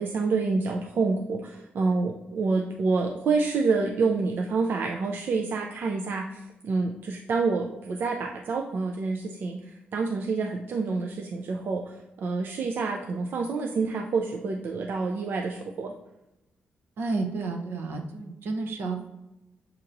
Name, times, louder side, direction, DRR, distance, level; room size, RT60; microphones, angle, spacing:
voice 1, 0.0-15.9, right 4 dB, 60° right, 2 dB, 0.4 m, -28 dB
voice 2, 17.0-19.1, right 3 dB, 75° right, 3 dB, 0.8 m, -31 dB
6.6 x 2.8 x 2.6 m, 0.95 s
cardioid pair, 100°, 4 cm